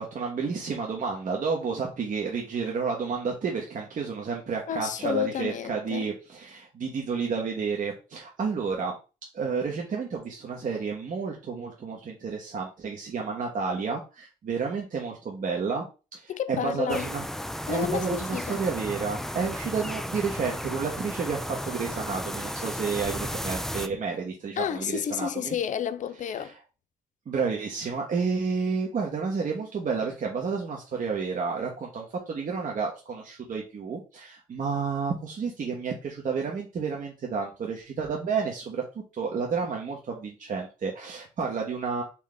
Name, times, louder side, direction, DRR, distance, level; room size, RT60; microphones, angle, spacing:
voice 1, 0.0-8.9 9.3-17.2 17.6-25.5 27.3-38.8 39.1-42.0, right 5 dB, 55° right, 1.3 m, -31 dB
voice 2, 4.7-6.1 16.3-17.1 17.7-18.6 24.6-26.5, left 9 dB, 50° left, 0.5 m, -30 dB
sound 1, 16.9-23.9, equal, ahead, 0.5 m, -34 dB
4.4 x 3.2 x 3.7 m
hypercardioid pair, 50°, 16 cm